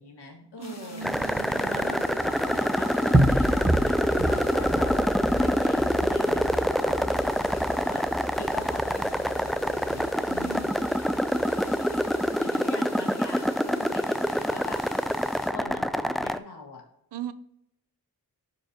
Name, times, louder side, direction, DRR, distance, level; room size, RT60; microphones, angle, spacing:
voice 1, 0.0-1.1 1.6-10.9 12.0-14.8 15.5-16.8, left 3 dB, 80° left, 0 dB, 2.0 m, -42 dB
sound 1, 0.6-15.5, left 3 dB, 40° left, 1.4 m, -48 dB
voice 2, 0.6-1.9 10.4-10.7 17.1-17.3, right 7 dB, 90° right, 14 dB, 0.6 m, -38 dB
sound 2, 1.0-16.4, equal, ahead, 0.3 m, -26 dB
sound 3, 2.2-12.3, right 1 dB, 20° right, 1.1 m, -31 dB
12.0 x 4.7 x 2.8 m, 0.77 s
cardioid pair, 60°, 40 cm